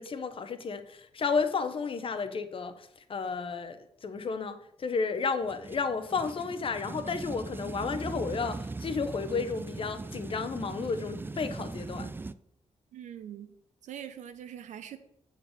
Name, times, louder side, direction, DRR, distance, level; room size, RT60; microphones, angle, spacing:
voice 1, 0.0-12.1, left 5 dB, 45° left, 0.7 m, -32 dB
sound 1, 5.4-12.3, right 3 dB, 15° right, 0.3 m, -40 dB
voice 2, 12.9-13.5 13.8-15.0, right 10 dB, 85° right, 0.7 m, -43 dB
6.6 x 4.0 x 6.3 m
cardioid pair, 90°, 12 cm